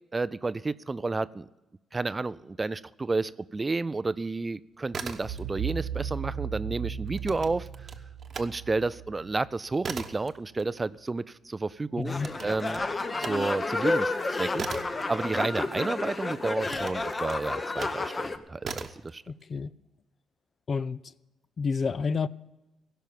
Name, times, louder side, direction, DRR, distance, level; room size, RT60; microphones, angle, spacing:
voice 1, 0.1-1.5 1.9-7.9 8.4-12.8 13.2-19.2, right 3 dB, 25° right, 0.4 m, -31 dB
sound 1, 4.7-5.7 6.0-8.5 8.9-15.9 16.6-18.0 18.6-19.1, right 5 dB, 45° right, 1.0 m, -40 dB
sound 2, 5.2-10.1, right 8 dB, 75° right, 1.4 m, -36 dB
voice 2, 12.0-12.3 19.3-19.7 20.7-21.0 21.6-22.3, left 5 dB, 45° left, 0.5 m, -29 dB
sound 3, 12.1-18.4, left 3 dB, 25° left, 0.9 m, -30 dB
16.5 x 5.7 x 9.2 m
cardioid pair, 90°, 0 cm